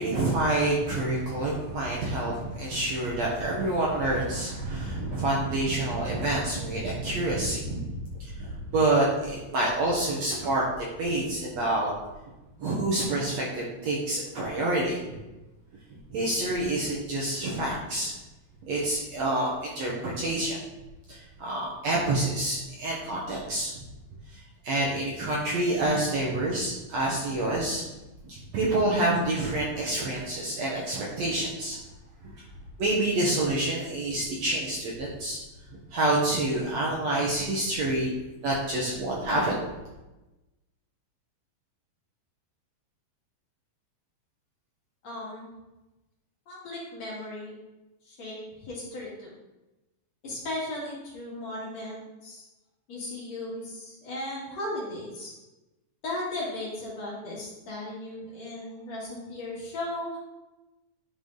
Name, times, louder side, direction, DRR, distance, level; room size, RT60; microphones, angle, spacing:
voice 1, 0.0-11.9 12.6-15.2 16.1-18.1 18.6-20.6 21.1-23.8 24.3-27.8 28.3-31.8 32.8-35.4 35.9-38.1 38.4-39.6, right 2 dB, 60° right, -4 dB, 2.0 m, -27 dB
voice 2, 45.0-45.5 46.5-47.6 48.0-49.4 50.2-52.4 52.9-55.3 56.0-60.2, left 1 dB, 50° left, -6 dB, 3.1 m, -36 dB
11.0 x 4.9 x 3.9 m, 1.0 s
omnidirectional pair, 4.1 m